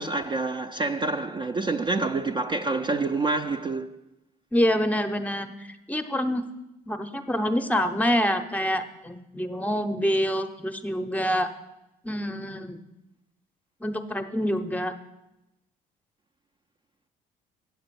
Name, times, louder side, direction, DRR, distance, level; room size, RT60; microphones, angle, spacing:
voice 1, 0.0-3.9, right 3 dB, 30° right, 0.5 m, -27 dB
voice 2, 4.5-5.5 5.9-6.4 6.9-11.5 12.0-12.8 13.8-14.9, equal, 10° left, 0.7 m, -26 dB
7.9 x 7.9 x 6.8 m
cardioid pair, 110°, 17 cm